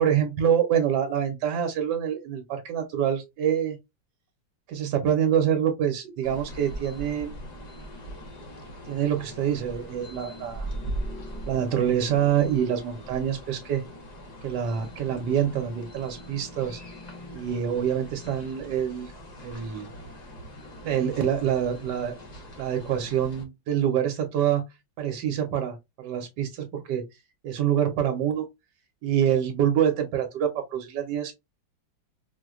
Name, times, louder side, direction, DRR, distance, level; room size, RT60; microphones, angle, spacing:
voice 1, 0.0-3.8 4.7-7.3 8.9-10.7 11.5-13.8 14.4-16.8 17.3-19.1 19.4-19.9 20.8-22.2 22.6-24.7 25.0-27.0 27.4-28.5 29.0-31.3, right 9 dB, 75° right, 1.2 m, -26 dB
sound 1, 6.2-23.4, right 1 dB, 60° left, 0.4 m, -40 dB
4.4 x 2.1 x 2.3 m
omnidirectional pair, 2.0 m